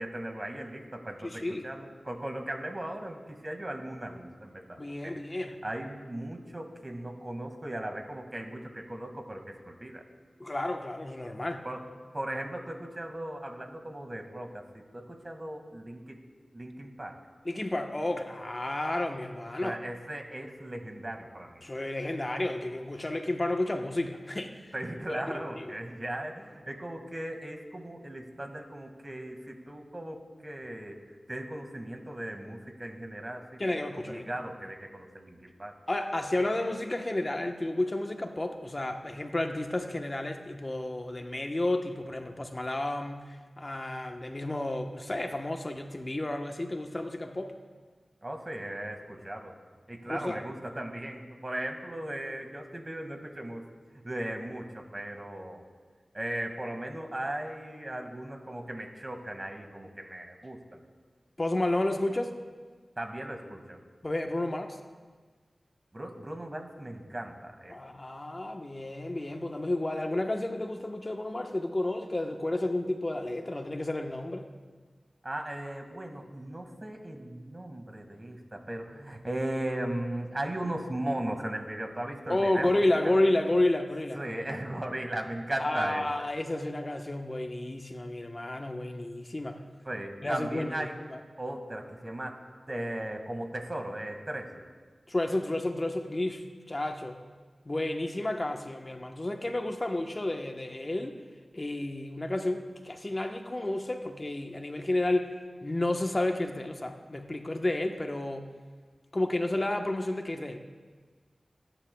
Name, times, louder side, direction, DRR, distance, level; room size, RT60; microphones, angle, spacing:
voice 1, 0.0-5.2 5.6-10.0 11.6-11.8 12.1-16.2 16.5-17.2 19.6-21.6 24.7-31.0 31.3-33.6 34.1-35.7 48.2-49.5 49.9-53.6 54.0-55.7 56.1-60.8 63.0-63.8 65.9-67.7 75.2-83.2 84.1-86.3 89.9-91.0 91.4-92.4 92.7-94.7, right 1 dB, 40° right, 3 dB, 1.9 m, -37 dB
voice 2, 1.2-1.7 4.8-5.6 10.4-11.7 17.4-19.8 21.6-24.7 25.1-25.6 33.6-34.3 35.9-47.6 50.0-50.4 61.4-62.3 64.0-64.8 67.7-74.5 82.3-84.3 85.6-89.6 90.2-90.7 91.1-91.2 95.1-97.2 97.6-101.2 101.5-105.3 105.6-108.5 109.1-110.6, left 1 dB, 40° left, 4 dB, 1.1 m, -31 dB
26.5 x 10.0 x 2.3 m, 1.5 s
cardioid pair, 40°, 0 cm